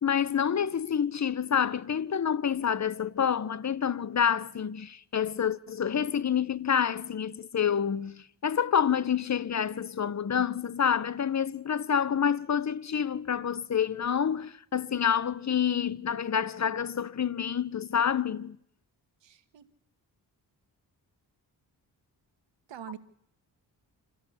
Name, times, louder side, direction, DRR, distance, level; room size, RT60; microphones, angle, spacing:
voice 1, 0.0-18.6, left 8 dB, 40° left, 0.8 m, -28 dB
voice 2, 19.2-19.7 22.7-23.0, right 10 dB, 75° right, 1.3 m, -44 dB
27.0 x 13.5 x 7.1 m
supercardioid pair, 50°, 44 cm